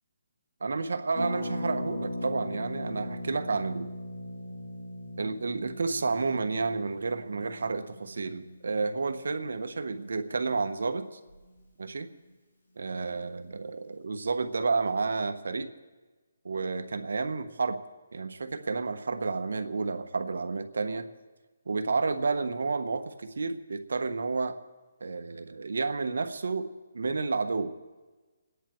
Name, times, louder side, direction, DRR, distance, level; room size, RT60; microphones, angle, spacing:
voice 1, 0.6-3.9 5.2-11.2 11.8-12.1 12.8-15.7 16.4-17.8 18.1-21.1 21.7-24.6 25.0-26.7 26.9-27.7, right 4 dB, 75° right, 7 dB, 1.3 m, -31 dB
Harp, 1.1-10.8 11.0-11.1 11.3-11.6, left 1 dB, 50° left, 6.0 m, -39 dB
28.5 x 10.0 x 4.6 m, 1.3 s
hypercardioid pair, 165°, 0 cm